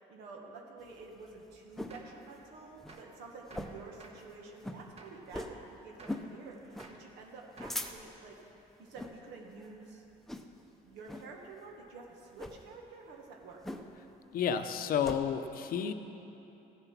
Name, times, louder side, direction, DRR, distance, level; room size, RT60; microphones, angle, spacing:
voice 1, 0.0-8.3 8.8-10.0 10.8-13.6, right 3 dB, 85° right, 0 dB, 1.5 m, -50 dB
sound 1, 0.8-2.0 2.4-2.5 2.8-3.0 3.5-3.9 4.2-4.3 4.6-4.8 5.3-5.6 6.0-6.3 6.7-6.9 7.4-8.3 8.9-9.2 9.6-9.8 10.3-10.7 11.1-11.3 12.3-12.6 13.6-14.1 14.4-15.2, left 1 dB, ahead, 0.7 m, -41 dB
Gunshot gunfire, 1.9-2.2 2.9-3.2 3.5-4.3 5.0-5.3 6.0-6.3 6.8-7.1 7.6-8.1, right 3 dB, 35° right, 1.3 m, -54 dB
voice 2, 14.3-15.9, left 8 dB, 60° left, 9 dB, 0.7 m, -31 dB
15.5 x 6.9 x 5.9 m, 2.9 s
cardioid pair, 110°, 17 cm